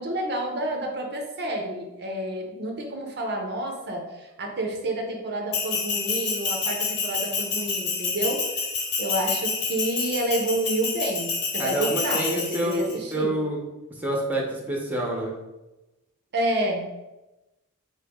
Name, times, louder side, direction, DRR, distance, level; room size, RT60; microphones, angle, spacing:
voice 1, 0.0-8.4 9.0-13.4 16.3-16.9, right 1 dB, 50° right, 2 dB, 0.6 m, -29 dB
Bell, 5.5-12.9, left 4 dB, 85° left, 0.9 m, -28 dB
voice 2, 11.6-13.6 14.0-15.3, right 1 dB, 10° right, -1 dB, 0.8 m, -27 dB
4.5 x 3.0 x 3.5 m, 1.0 s
head